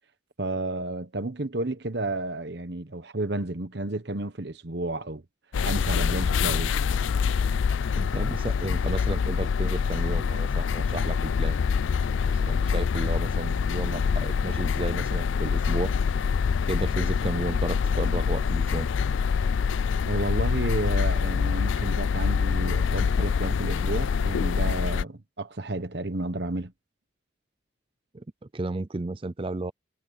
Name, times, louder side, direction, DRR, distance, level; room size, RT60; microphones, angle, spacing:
voice 1, 0.4-5.2 5.6-6.7 20.1-26.7, right 2 dB, 55° right, 1.1 m, -31 dB
sound 1, 5.5-25.0, left 6 dB, 75° left, 0.4 m, -25 dB
voice 2, 8.0-11.6 12.3-15.9 16.7-18.9 28.1-28.2 28.5-29.7, right 2 dB, 25° right, 0.5 m, -33 dB
head